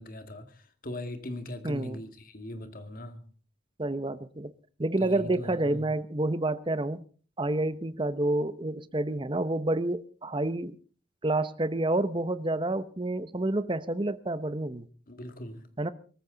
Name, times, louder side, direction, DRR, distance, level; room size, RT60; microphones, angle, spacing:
voice 1, 0.0-3.2 5.0-5.9 15.1-15.7, left 1 dB, 45° left, 2.2 m, -40 dB
voice 2, 1.6-2.0 3.8-4.5 4.8-7.0 7.4-10.8 11.2-14.9 15.8-15.9, right 2 dB, 25° right, 0.9 m, -29 dB
23.0 x 14.5 x 4.0 m
head